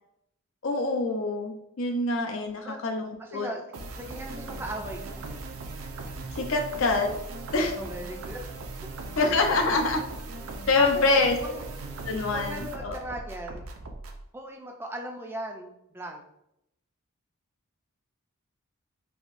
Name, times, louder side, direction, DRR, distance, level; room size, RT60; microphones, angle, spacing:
voice 1, 0.6-3.5 6.4-7.1 7.5-7.8 9.2-10.0 10.7-11.4 12.0-13.0, left 3 dB, 65° left, 4 dB, 0.5 m, -25 dB
voice 2, 3.2-3.6 4.0-5.2 7.8-8.4 8.8-8.9 10.8-11.6 12.3-13.6 14.3-16.2, right 1 dB, 10° right, 2 dB, 0.3 m, -38 dB
sound 1, 3.7-14.2, right 2 dB, 75° right, 0.4 m, -39 dB
3.4 x 2.7 x 2.5 m, 0.81 s
head